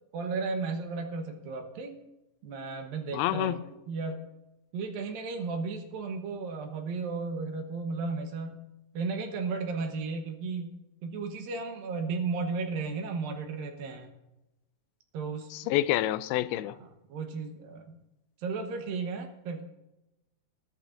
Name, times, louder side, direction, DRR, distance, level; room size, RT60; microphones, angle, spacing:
voice 1, 0.1-1.9 2.4-3.6 3.9-4.2 4.7-8.6 8.9-10.7 11.0-14.2 15.1-15.7 16.8-18.0 18.4-19.6, right 4 dB, 75° right, 5 dB, 2.8 m, -34 dB
voice 2, 3.1-3.6 15.5-16.8, left 14 dB, 90° left, 14 dB, 2.5 m, -28 dB
20.5 x 11.0 x 2.5 m, 0.94 s
omnidirectional pair, 4.3 m